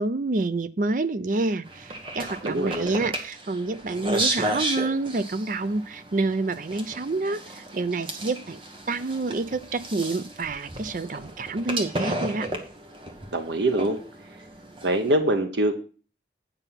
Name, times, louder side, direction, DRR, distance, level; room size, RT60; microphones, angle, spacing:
voice 1, 0.0-7.4 7.7-8.6 8.9-12.5, right 3 dB, 45° right, 14 dB, 0.5 m, -28 dB
sound 1, 1.7-15.1, right 1 dB, 30° right, 1.2 m, -34 dB
voice 2, 2.4-3.0 13.3-14.0 14.8-15.8, right 1 dB, 80° right, 7 dB, 0.9 m, -24 dB
9.1 x 5.5 x 5.7 m, 0.38 s
head